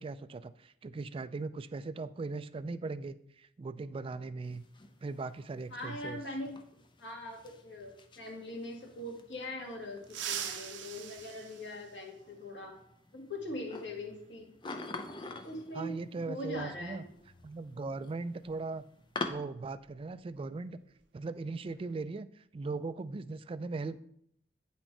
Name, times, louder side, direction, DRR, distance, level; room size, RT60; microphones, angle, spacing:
voice 1, 0.0-4.6 5.0-6.2 15.7-17.1 17.4-18.8 19.3-20.8 21.1-24.0, right 3 dB, 30° right, 13 dB, 0.3 m, -39 dB
sound 1, 4.4-19.3, left 3 dB, 25° left, 0.5 m, -47 dB
voice 2, 5.7-12.7 13.1-14.5 15.4-15.9 16.3-17.0, left 1 dB, 85° left, -1 dB, 2.0 m, -42 dB
sound 2, 10.0-12.5 14.1-14.2 15.4-15.5 17.2-17.3 17.7-17.9 18.4-20.5 20.8-21.1 21.5-21.9, right 9 dB, 80° right, 0.6 m, -43 dB
8.7 x 4.3 x 4.5 m, 0.71 s
head